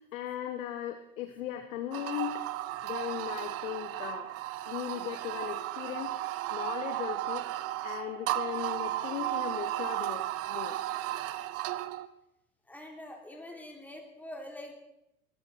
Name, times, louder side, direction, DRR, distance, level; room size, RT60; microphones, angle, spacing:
voice 1, 0.1-2.4 2.8-4.3 4.7-6.2 6.5-7.5 7.8-10.8 11.2-11.5, left 12 dB, 65° left, 8 dB, 1.4 m, -38 dB
sound 1, 1.9-12.1, right 15 dB, 35° right, 0.8 m, -34 dB
voice 2, 12.7-14.7, left 1 dB, 5° left, 1 dB, 3.5 m, -45 dB
21.5 x 13.0 x 4.3 m, 0.81 s
hypercardioid pair, 105°, 43 cm